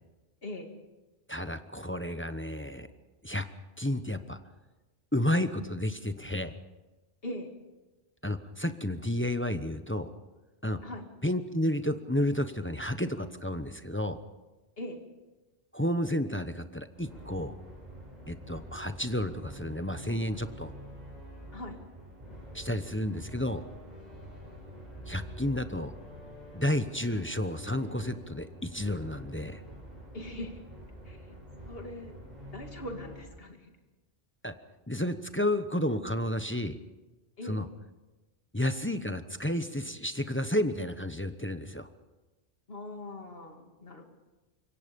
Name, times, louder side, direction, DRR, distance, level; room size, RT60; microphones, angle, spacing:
voice 1, 1.3-2.9 3.2-3.4 3.8-4.4 5.1-6.5 8.2-10.1 10.6-10.8 11.2-14.2 15.7-17.5 18.3-20.7 22.5-23.6 25.1-25.9 26.5-29.6 34.4-34.5 34.9-36.8 37.4-37.7 38.5-41.9, left 1 dB, 10° left, 9 dB, 0.8 m, -31 dB
sound 1, 16.9-33.2, equal, 40° right, 7.3 m, -47 dB
voice 2, 30.1-30.6 31.0-31.4 31.7-32.1 32.5-33.7 37.4-37.6 42.7-44.0, left 1 dB, 60° left, 4 dB, 2.6 m, -41 dB
26.0 x 23.0 x 5.3 m, 1.2 s
omnidirectional pair, 1.1 m